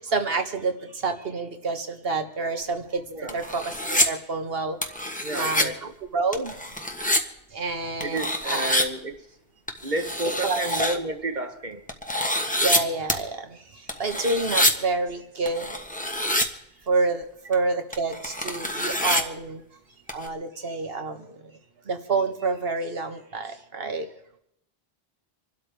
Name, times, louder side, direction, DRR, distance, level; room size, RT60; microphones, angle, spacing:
voice 1, 0.0-4.9 5.3-6.6 7.5-8.6 10.4-10.6 12.6-15.7 16.9-19.6 20.1-21.5 21.8-24.1, right 3 dB, 70° right, 1.7 m, -28 dB
sound 1, 2.6-2.7 3.3-4.1 4.8-5.7 6.3-7.2 8.0-8.9 9.7-11.0 11.9-12.8 13.1-13.2 13.9-14.7 15.5-16.5 17.5-17.6 17.9-19.2 20.1-20.3, left 1 dB, 10° left, 1.3 m, -26 dB
voice 2, 5.2-5.9 8.0-9.2 9.8-11.8, right 2 dB, 50° right, 1.4 m, -31 dB
27.0 x 12.5 x 3.4 m
omnidirectional pair, 1.0 m